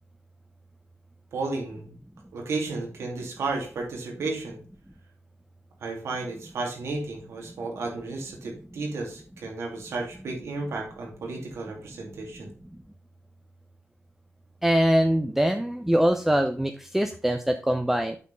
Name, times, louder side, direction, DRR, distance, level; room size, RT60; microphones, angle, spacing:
voice 1, 1.3-1.9 2.3-4.6 5.8-12.5, right 3 dB, 75° right, 1 dB, 2.6 m, -33 dB
voice 2, 14.6-18.2, equal, 5° right, 7 dB, 0.6 m, -23 dB
8.4 x 4.3 x 5.3 m, 0.41 s
cardioid pair, 90°, 5 cm